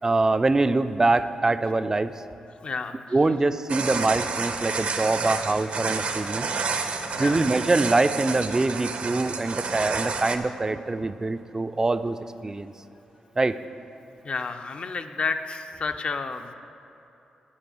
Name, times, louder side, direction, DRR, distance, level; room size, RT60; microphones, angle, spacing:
voice 1, 0.0-2.1 3.1-6.5 7.2-12.7 13.4-13.6, right 2 dB, 25° right, 11 dB, 0.4 m, -24 dB
voice 2, 2.6-3.0 7.1-7.5 14.2-16.5, left 4 dB, 55° left, 7 dB, 0.6 m, -31 dB
sound 1, 3.7-10.4, right 4 dB, 65° right, 0.7 m, -30 dB
8.6 x 5.2 x 7.7 m, 2.9 s
cardioid pair, 70°, 2 cm